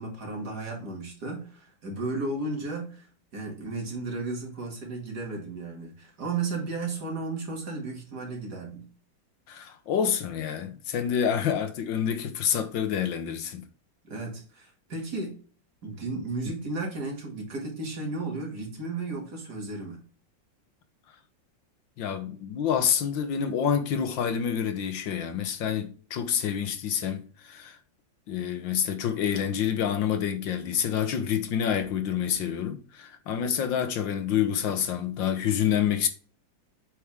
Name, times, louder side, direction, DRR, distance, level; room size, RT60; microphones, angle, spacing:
voice 1, 0.0-3.1 3.3-8.9 14.0-15.4 15.8-20.0, right 3 dB, 55° right, 2.8 m, -34 dB
voice 2, 9.5-13.6 16.4-16.5 22.0-27.8 28.3-36.1, left 8 dB, 75° left, 1.7 m, -28 dB
7.9 x 5.3 x 3.5 m
omnidirectional pair, 2.1 m